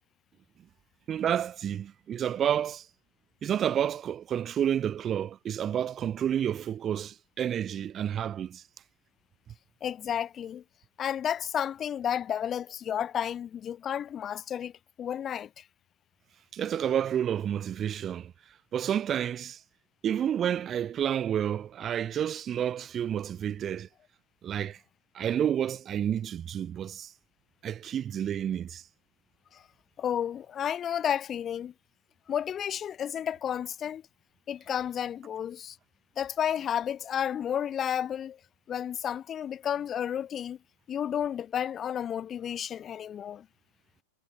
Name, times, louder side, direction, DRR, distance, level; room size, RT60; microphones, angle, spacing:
voice 1, 1.1-2.9 3.4-8.6 16.5-18.3 18.7-19.6 20.0-23.9 24.4-24.8 25.1-27.1 27.6-28.8, right 9 dB, 25° right, 0.5 m, -30 dB
voice 2, 9.8-10.6 11.0-14.7 15.0-15.6 29.5-29.6 30.0-31.7 32.3-34.0 34.5-35.8 36.2-38.4 38.7-40.6 40.9-43.5, left 9 dB, 25° left, 2.0 m, -32 dB
hypercardioid pair, 130°, 0 cm